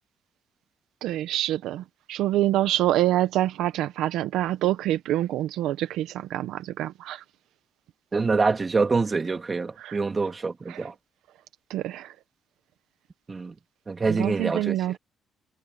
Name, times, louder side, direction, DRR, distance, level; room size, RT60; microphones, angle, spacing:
voice 1, 1.0-7.2 9.8-10.0 10.7-10.9 11.7-12.1 14.1-15.0, right 14 dB, 80° right, 1.2 m, -26 dB
voice 2, 8.1-10.9 13.3-13.5 13.9-14.9, right 4 dB, 30° right, 3.2 m, -25 dB
supercardioid pair, 75°, 0 cm